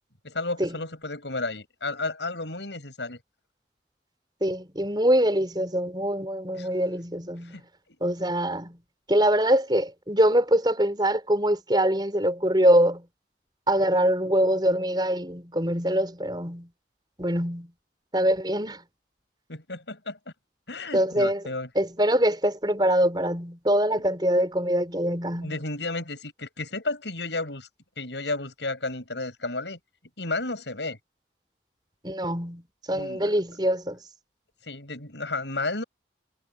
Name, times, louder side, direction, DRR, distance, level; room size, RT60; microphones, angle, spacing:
voice 1, 0.2-3.2 6.5-6.7 7.4-7.6 19.5-20.2 20.7-21.7 25.3-27.7 28.0-29.8 30.2-31.0 32.9-33.3 34.6-35.8, left 2 dB, 85° left, 7.3 m, -32 dB
voice 2, 4.4-7.6 8.0-8.8 9.1-13.0 13.7-16.7 17.2-17.7 18.1-18.8 20.9-21.4 21.7-25.5 32.0-32.6 32.9-34.0, equal, 25° right, 6.5 m, -24 dB
head